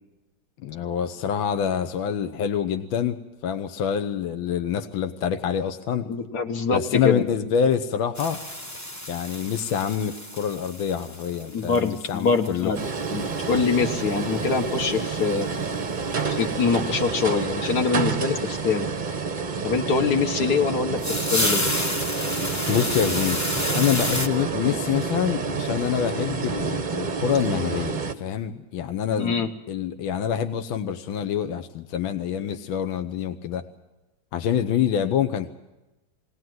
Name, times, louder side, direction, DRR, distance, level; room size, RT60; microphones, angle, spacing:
voice 1, 0.6-3.2 3.4-6.1 6.7-8.4 9.1-12.7 22.7-33.6 34.3-35.5, left 8 dB, 80° left, 8 dB, 1.7 m, -26 dB
voice 2, 6.1-7.2 11.5-12.8 13.1-15.5 16.3-18.9 19.6-21.7 29.2-29.5, left 5 dB, 55° left, 6 dB, 1.8 m, -24 dB
sound 1, 8.1-13.2 13.6-13.7 14.0-14.1 14.2-14.3 14.8-14.9 16.7-16.8 21.0-24.3, left 1 dB, 15° left, 0.6 m, -30 dB
sound 2, 12.7-28.1, right 5 dB, 35° right, 0.7 m, -29 dB
21.0 x 19.0 x 7.8 m, 1.0 s
omnidirectional pair, 2.2 m